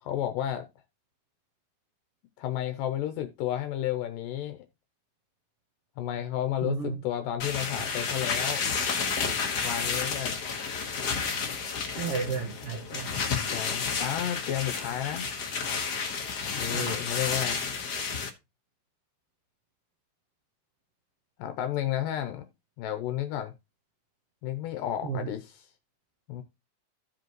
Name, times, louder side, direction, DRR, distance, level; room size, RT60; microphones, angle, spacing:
voice 1, 0.0-0.7 2.4-4.6 6.0-8.6 9.6-10.4 13.3-15.3 16.6-17.6 21.4-22.5 22.8-23.5 24.4-25.5 26.3-26.4, left 11 dB, 80° left, 2.3 m, -32 dB
voice 2, 6.6-7.0 12.0-13.1 16.7-17.0 25.0-25.3, right 6 dB, 60° right, 1.5 m, -33 dB
sound 1, 7.4-18.3, left 5 dB, 65° left, 1.0 m, -31 dB
15.0 x 5.1 x 3.0 m
omnidirectional pair, 4.0 m